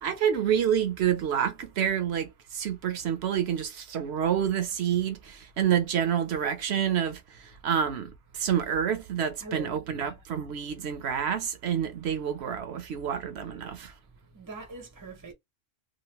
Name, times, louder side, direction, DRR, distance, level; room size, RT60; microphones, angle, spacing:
voice 1, 0.0-13.9, right 9 dB, 65° right, 0.9 m, -28 dB
voice 2, 9.4-10.2 14.3-15.3, right 3 dB, 20° right, 0.6 m, -43 dB
3.0 x 2.4 x 2.8 m
omnidirectional pair, 1.3 m